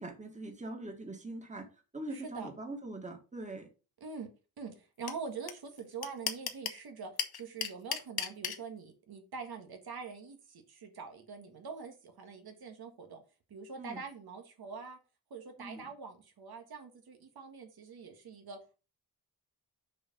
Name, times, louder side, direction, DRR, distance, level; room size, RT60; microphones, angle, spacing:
voice 1, 0.0-1.7 1.9-3.7 13.8-14.0 15.6-15.9, right 2 dB, 20° right, 1.8 m, -42 dB
voice 2, 2.1-2.5 4.0-4.3 4.6-13.2 13.5-15.0 15.3-18.6, right 5 dB, 80° right, 1.7 m, -44 dB
sound 1, 5.1-5.2 5.5-5.6 5.8-6.8 7.2-8.6, left 8 dB, 80° left, 1.2 m, -33 dB
6.5 x 4.8 x 5.3 m
wide cardioid pair, 125°, 37 cm